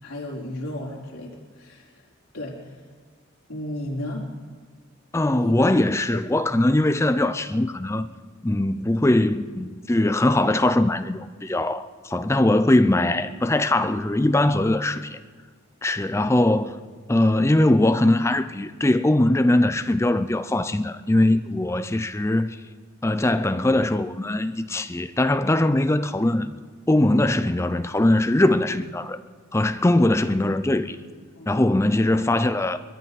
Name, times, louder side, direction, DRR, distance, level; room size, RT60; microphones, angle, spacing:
voice 1, 0.0-2.0 2.3-2.8 3.5-4.2 5.3-5.5 31.4-31.5, left 1 dB, 80° left, 3.8 m, -34 dB
voice 2, 5.1-8.1 8.4-15.2 15.8-16.8 17.1-22.6 23.0-26.5 26.9-29.2 29.5-31.0 31.5-32.8, left 1 dB, 10° left, 0.4 m, -21 dB
22.5 x 13.0 x 4.1 m
head